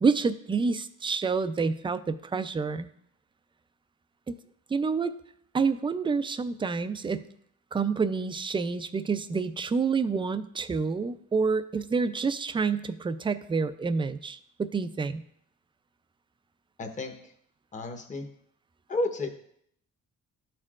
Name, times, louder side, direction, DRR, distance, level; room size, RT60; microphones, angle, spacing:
voice 1, 0.0-2.9 4.3-4.4 4.7-5.1 5.5-7.3 7.7-15.2, right 5 dB, 15° right, 12 dB, 0.4 m, -28 dB
voice 2, 16.8-17.1 17.7-18.3 18.9-19.3, left 2 dB, 25° left, 3 dB, 0.9 m, -31 dB
12.0 x 4.5 x 2.4 m, 0.69 s
cardioid pair, 90°, 30 cm